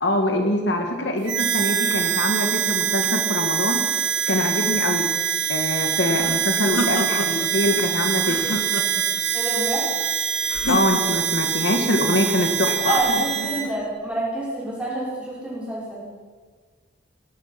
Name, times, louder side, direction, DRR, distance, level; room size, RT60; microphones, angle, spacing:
voice 1, 0.0-3.8 4.3-5.1 5.5-8.6 10.7-13.0, left 1 dB, 70° left, 4 dB, 1.7 m, -24 dB
Harmonica, 1.3-13.7, right 9 dB, 80° right, 1.4 m, -24 dB
sound 1, 6.1-7.5 8.2-9.2 10.5-11.4 12.9-13.7, equal, 90° left, 1.5 m, -30 dB
voice 2, 9.3-9.9 12.8-16.1, right 1 dB, 5° right, -7 dB, 5.4 m, -27 dB
18.5 x 13.0 x 5.9 m, 1.5 s
head